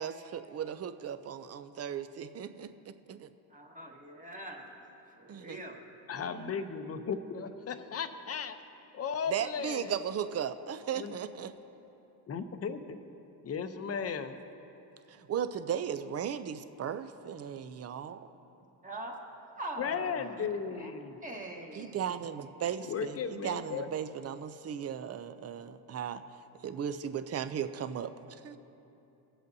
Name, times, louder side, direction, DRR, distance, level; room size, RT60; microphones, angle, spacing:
voice 1, 0.0-3.3 5.3-5.6 9.3-11.5 15.1-18.3 20.4-20.5 21.7-26.2 26.6-28.6, right 8 dB, 35° right, 10 dB, 0.5 m, -36 dB
voice 2, 3.5-4.9 5.2-5.8 6.1-6.5 18.8-20.3 20.8-20.9 21.2-22.0, right 1 dB, 15° right, -1 dB, 1.3 m, -43 dB
voice 3, 6.1-8.6 8.9-10.0 11.0-11.2 12.3-13.0 13.4-14.4 19.8-21.2 22.8-23.9, left 6 dB, 30° left, 9 dB, 0.7 m, -36 dB
20.0 x 7.9 x 2.7 m, 2.9 s
cardioid pair, 100°, 46 cm